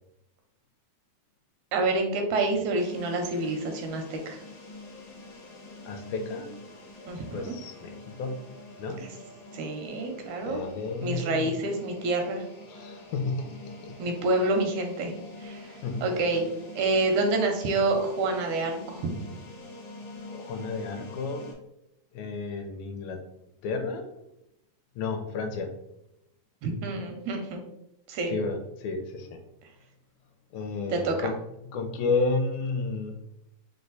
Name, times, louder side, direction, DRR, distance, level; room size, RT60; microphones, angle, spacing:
voice 1, 1.7-4.4 7.1-7.6 9.0-9.1 9.5-10.6 11.0-12.4 14.0-15.1 15.4-15.7 16.0-16.4 16.8-19.1 26.6-27.6 28.1-28.4 30.9-31.3, right 2 dB, 85° right, 4 dB, 2.0 m, -28 dB
sound 1, 2.8-21.5, left 2 dB, 55° left, 1.3 m, -45 dB
voice 2, 5.8-6.5 7.3-8.3 8.8-9.0 10.4-11.5 12.7-14.1 15.8-16.0 20.3-21.5 22.1-23.2 23.6-24.1 25.0-25.7 28.3-29.4 30.5-31.4 31.7-33.2, left 3 dB, 80° left, 6 dB, 1.8 m, -31 dB
4.7 x 2.2 x 3.9 m, 0.83 s
omnidirectional pair, 3.4 m